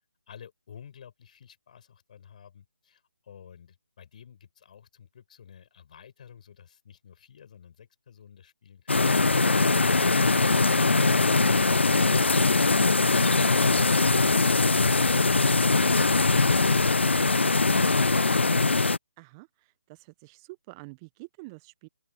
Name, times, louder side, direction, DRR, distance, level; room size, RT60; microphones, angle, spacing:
voice 1, 0.3-18.3, left 8 dB, 40° left, 7.2 m, -52 dB
sound 1, 8.9-19.0, left 3 dB, 70° left, 0.7 m, -22 dB
Wind instrument woodwind instrument, 9.2-16.7, right 1 dB, 85° right, 7.7 m, -49 dB
voice 2, 19.2-21.9, right 26 dB, 20° right, 1.1 m, -47 dB
open air
figure-of-eight pair, 150°, 6 cm